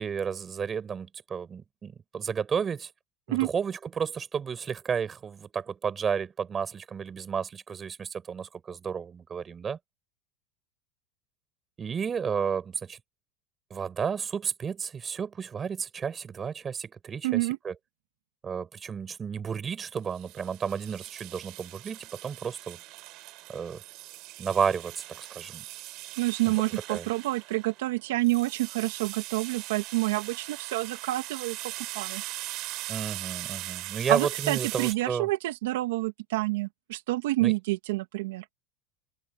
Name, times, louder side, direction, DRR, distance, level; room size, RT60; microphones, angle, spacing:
voice 1, 0.0-2.9 3.3-9.8 11.8-13.0 13.7-17.7 18.4-22.8 23.5-23.8 24.4-25.6 26.5-26.6 26.9-27.1 32.9-35.3 37.4-37.5, right 6 dB, 20° right, 5.3 m, -32 dB
voice 2, 17.2-17.6 26.2-32.2 34.1-38.4, right 19 dB, 85° right, 2.3 m, -28 dB
sound 1, 20.1-34.9, right 19 dB, 50° right, 3.3 m, -40 dB
open air
supercardioid pair, 150°, 0 cm